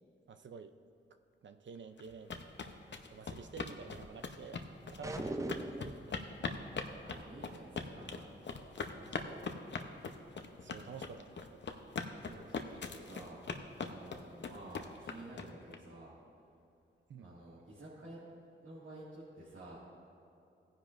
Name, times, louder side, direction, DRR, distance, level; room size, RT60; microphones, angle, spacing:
voice 1, 0.3-0.7 1.4-2.4 3.1-4.6 4.9-5.5 5.8-6.4 10.5-12.2 17.1-17.4, right 5 dB, 60° right, 9 dB, 0.6 m, -50 dB
sound 1, 2.0-15.8, left 5 dB, 60° left, 0.8 m, -41 dB
voice 2, 4.8-5.2 7.0-8.3 8.9-9.7 9.9-10.3 10.7-10.9 11.8-11.9 12.2-16.1 17.2-18.2 18.6-19.8, right 1 dB, 90° right, -10 dB, 2.1 m, -52 dB
sound 2, 5.0-6.1, right 2 dB, 15° right, 0.6 m, -38 dB
16.5 x 10.0 x 2.6 m, 2.7 s
cardioid pair, 60°, 21 cm